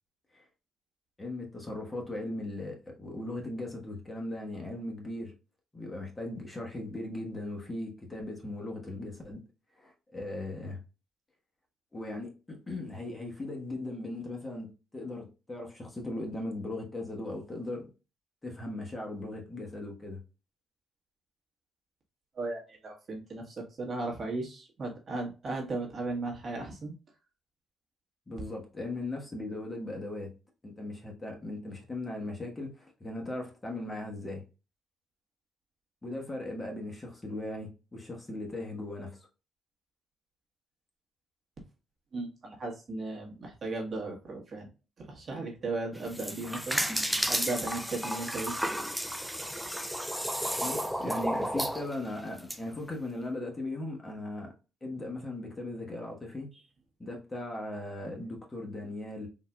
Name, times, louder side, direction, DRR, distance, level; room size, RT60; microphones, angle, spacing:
voice 1, 1.2-5.3 5.7-9.4 9.8-10.8 11.9-17.9 18.4-20.2 28.3-30.3 30.6-34.4 36.0-39.2 50.6-54.5 54.8-56.5 57.0-59.3, left 2 dB, 20° left, 1.1 m, -38 dB
voice 2, 22.3-26.9 42.1-44.7 45.0-46.8 47.3-48.5, right 2 dB, 45° right, 1.3 m, -36 dB
sound 1, 46.0-52.6, equal, ahead, 0.4 m, -32 dB
3.9 x 2.6 x 2.2 m
cardioid pair, 90°, 0 cm